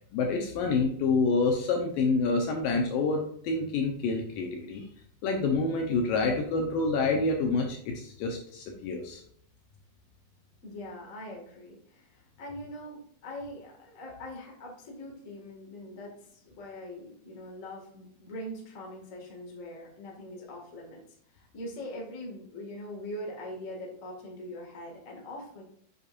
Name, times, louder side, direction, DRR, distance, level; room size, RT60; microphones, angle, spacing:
voice 1, 0.1-4.9 5.2-9.2, left 3 dB, 75° left, 2 dB, 2.3 m, -27 dB
voice 2, 10.6-21.0 21.3-25.6, left 1 dB, 35° left, -1 dB, 1.2 m, -42 dB
8.3 x 6.6 x 2.5 m, 0.66 s
omnidirectional pair, 4.6 m